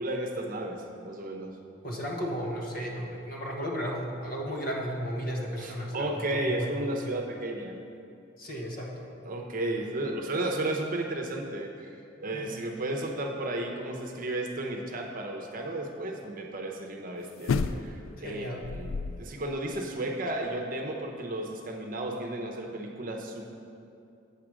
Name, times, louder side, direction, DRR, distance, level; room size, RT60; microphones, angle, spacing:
voice 1, 0.0-1.5 5.6-7.8 9.2-11.9 12.2-23.5, right 1 dB, 45° right, 2 dB, 0.8 m, -33 dB
voice 2, 1.8-7.0 8.4-9.1 12.3-12.5 18.2-18.6, equal, 50° left, -1 dB, 1.2 m, -34 dB
sound 1, 17.4-18.2 18.6-19.4 19.7-19.8, left 4 dB, 90° left, 0.3 m, -30 dB
8.2 x 5.0 x 6.1 m, 2.5 s
head